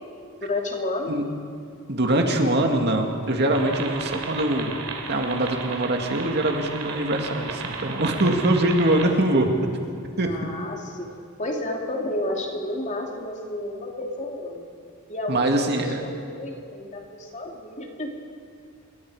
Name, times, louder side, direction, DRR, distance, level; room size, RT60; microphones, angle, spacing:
voice 1, 0.4-1.1 10.3-11.1 11.4-14.6 15.1-18.1, left 1 dB, 35° left, 1 dB, 2.8 m, -31 dB
voice 2, 1.9-4.8 5.1-9.7 10.2-10.3 15.3-16.0, right 1 dB, 55° right, 3 dB, 2.2 m, -23 dB
sound 1, 3.5-9.1, right 4 dB, 85° right, 3.0 m, -34 dB
27.0 x 22.5 x 5.0 m, 2.2 s
head